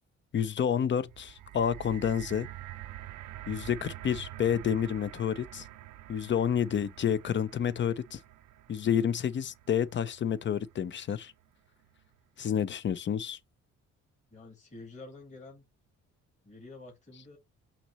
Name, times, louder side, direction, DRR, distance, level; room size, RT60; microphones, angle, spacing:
voice 1, 0.3-2.5 3.5-5.6 6.1-8.2 8.7-11.3 12.4-13.4, left 8 dB, 40° left, 0.5 m, -29 dB
sound 1, 1.0-11.2 12.0-12.1, right 14 dB, 85° right, 0.6 m, -47 dB
voice 2, 14.3-15.6 16.5-17.4, left 3 dB, 25° left, 1.7 m, -48 dB
5.8 x 2.8 x 3.1 m
cardioid pair, 90°, 30 cm